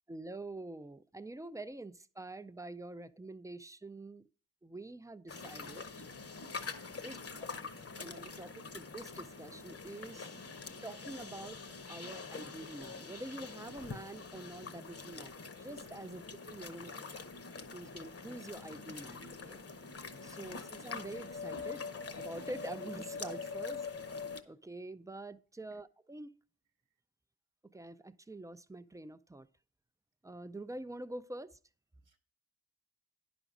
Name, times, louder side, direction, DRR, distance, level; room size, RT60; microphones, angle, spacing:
voice 1, 0.1-4.2 4.6-5.9 7.0-7.2 8.0-10.4 10.8-11.6 11.9-16.9 17.7-19.6 20.2-21.8 22.2-23.9 24.5-26.3 27.7-29.5 30.2-31.6, right 2 dB, 10° right, 0.4 m, -46 dB
sound 1, 5.3-24.4, left 4 dB, 40° left, 0.9 m, -44 dB
voice 2, 16.0-16.3 17.9-18.0 25.6-25.8 32.0-32.2, right 7 dB, 60° right, 0.9 m, -63 dB
9.9 x 6.0 x 5.2 m
wide cardioid pair, 90°, 37 cm